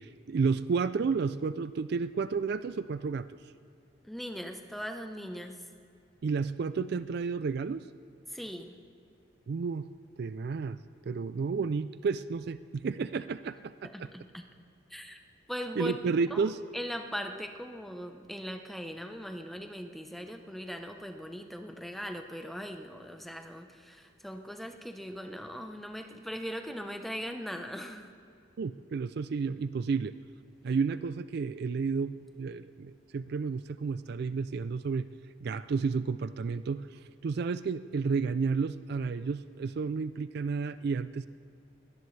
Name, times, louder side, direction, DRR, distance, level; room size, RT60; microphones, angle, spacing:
voice 1, 0.0-3.4 6.2-7.8 9.5-9.9 10.2-10.8 11.1-13.6 14.0-14.1 15.8-16.6 28.6-30.1 30.6-35.1 35.4-41.3, right 5 dB, 50° right, 14 dB, 0.3 m, -31 dB
voice 2, 4.0-5.6 8.3-8.8 13.8-14.4 14.9-28.1, equal, ahead, 5 dB, 0.7 m, -40 dB
21.5 x 17.5 x 3.3 m, 2.4 s
head